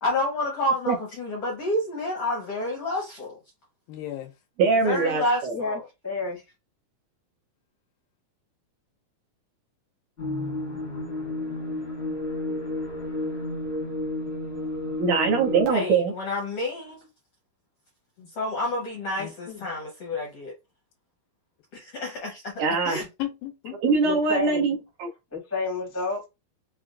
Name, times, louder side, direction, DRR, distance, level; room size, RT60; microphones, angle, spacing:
voice 1, 0.0-3.4 4.8-5.8 15.7-17.1 18.3-20.5 21.7-22.5 22.8-23.0, left 1 dB, 70° left, 1.5 m, -29 dB
voice 2, 3.9-4.3 18.2-18.3 19.2-19.7 23.0-24.0, left 13 dB, 90° left, 2.5 m, -36 dB
voice 3, 4.6-5.6 15.0-16.1 22.6-23.0 23.8-25.1, right 4 dB, 75° right, 1.9 m, -23 dB
voice 4, 6.0-6.4 24.0-24.6 25.3-26.3, left 3 dB, 20° left, 0.4 m, -29 dB
sound 1, 10.2-15.6, left 2 dB, 40° left, 0.8 m, -31 dB
5.7 x 2.2 x 2.5 m
omnidirectional pair, 4.1 m